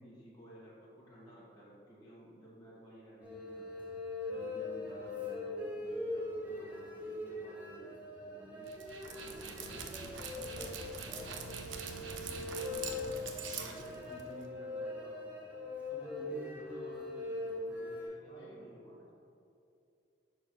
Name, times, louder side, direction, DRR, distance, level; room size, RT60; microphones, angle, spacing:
voice 1, 0.0-3.9 4.3-8.0 8.2-8.7 9.1-11.5 11.9-15.4 15.9-19.1, right 1 dB, 20° left, -7 dB, 1.3 m, -53 dB
sound 1, 3.2-18.1, left 2 dB, 10° right, 1.4 m, -41 dB
Dog, 8.7-14.5, right 5 dB, 90° right, 0.6 m, -44 dB
voice 2, 18.2-18.7, equal, 75° left, -5 dB, 1.6 m, -57 dB
4.7 x 4.7 x 5.9 m, 2.7 s
head